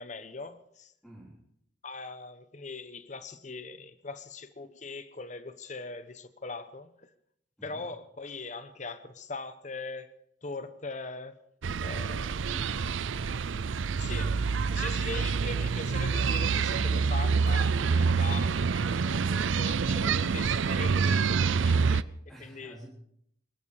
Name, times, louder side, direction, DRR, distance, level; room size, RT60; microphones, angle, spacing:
voice 1, 0.0-0.9 1.8-7.1 7.6-10.1 10.4-11.4 11.8-12.4 14.0-14.4 14.7-22.1 22.4-22.8, left 3 dB, 40° left, 1.0 m, -41 dB
voice 2, 1.0-1.4 7.6-7.9 12.3-12.8 22.3-22.9, right 1 dB, ahead, 3.6 m, -49 dB
sound 1, 11.6-22.0, right 5 dB, 85° right, 0.5 m, -27 dB
23.0 x 12.5 x 5.0 m
head